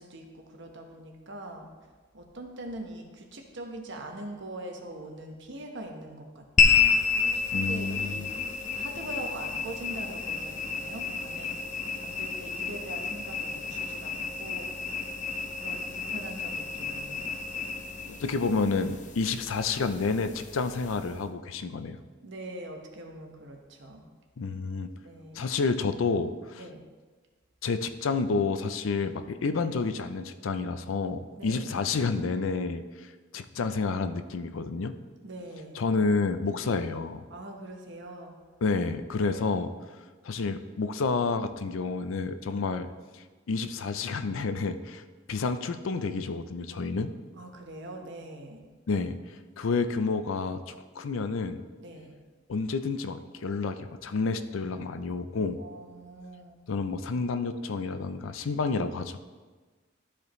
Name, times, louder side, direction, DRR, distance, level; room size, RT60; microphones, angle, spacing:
voice 1, 0.0-1.7 2.1-6.9 7.3-8.3 8.7-11.6 11.9-14.7 15.6-17.3 22.2-24.0 25.0-25.5 26.6-26.8 31.4-31.7 35.2-35.9 37.3-38.3 39.3-39.5 47.4-48.6 51.8-52.1 55.6-56.6, right 1 dB, 65° right, 3 dB, 1.1 m, -42 dB
sound 1, 6.6-21.2, left 6 dB, 40° left, 0.7 m, -30 dB
voice 2, 7.5-8.2 18.2-22.0 24.4-24.9 25.3-26.6 27.6-34.9 35.8-37.2 38.6-39.7 40.2-42.9 43.1-45.0 45.3-47.1 48.9-49.2 49.6-51.6 52.5-55.6 56.7-59.2, left 4 dB, 80° left, 10 dB, 0.5 m, -29 dB
12.0 x 5.0 x 3.1 m, 1.4 s
head